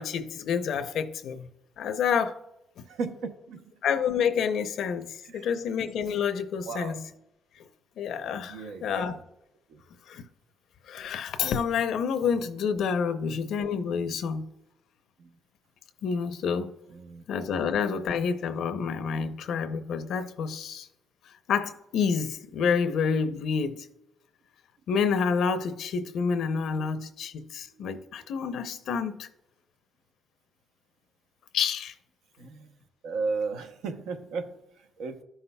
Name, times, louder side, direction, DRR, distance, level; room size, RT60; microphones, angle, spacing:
voice 1, 0.0-1.5 1.8-2.4 2.8-2.9 3.8-7.0 8.0-9.2 10.1-10.2 10.9-14.5 16.0-16.7 17.3-20.9 21.5-23.9 24.9-29.3 31.5-31.9, left 6 dB, 75° left, 0.6 m, -28 dB
voice 2, 8.4-9.2 9.7-9.8 15.2-15.3 16.9-17.2 26.7-26.9 27.8-27.9 32.4-32.7 33.0-35.2, right 4 dB, 90° right, 0.8 m, -35 dB
13.0 x 5.7 x 2.3 m
cardioid pair, 90°, 0 cm